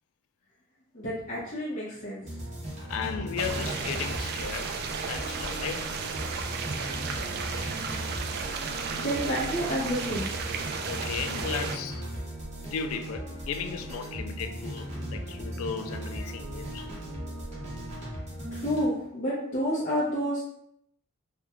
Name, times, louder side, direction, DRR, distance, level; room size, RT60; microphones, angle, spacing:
voice 1, 0.9-2.4 9.0-10.3 18.5-20.4, equal, 40° left, 0.7 m, -29 dB
sound 1, 2.2-18.9, equal, 35° right, 0.8 m, -37 dB
voice 2, 2.9-4.8 5.1-5.9 10.9-12.0 12.7-16.9, left 6 dB, 70° left, 0.3 m, -35 dB
sound 2, 3.4-11.8, right 5 dB, 50° right, 0.3 m, -34 dB
3.4 x 2.2 x 2.9 m
head